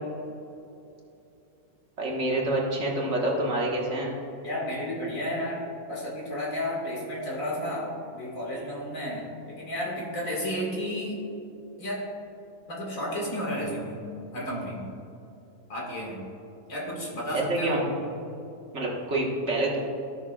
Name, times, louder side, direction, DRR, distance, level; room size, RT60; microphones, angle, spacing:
voice 1, 2.0-4.1 17.3-17.8 18.7-19.8, right 1 dB, 50° right, -2 dB, 1.6 m, -27 dB
voice 2, 4.4-11.2 11.8-12.1 12.7-14.0 14.3-15.0 15.7-16.3 16.7-18.0, equal, 60° left, -4 dB, 2.4 m, -32 dB
14.0 x 6.2 x 2.3 m, 2.7 s
omnidirectional pair, 1.6 m